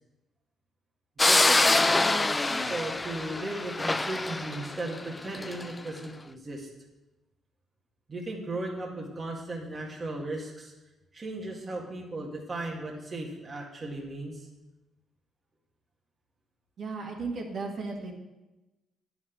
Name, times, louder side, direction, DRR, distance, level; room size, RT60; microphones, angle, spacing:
sound 1, 1.2-5.7, left 2 dB, 20° left, 0.5 m, -25 dB
voice 1, 1.2-6.7 8.1-10.7 11.1-14.5, right 2 dB, 30° right, -2 dB, 2.0 m, -36 dB
voice 2, 16.8-18.1, right 3 dB, 60° right, -1 dB, 2.2 m, -35 dB
9.5 x 5.9 x 8.2 m, 1.0 s
cardioid pair, 90°, 0 cm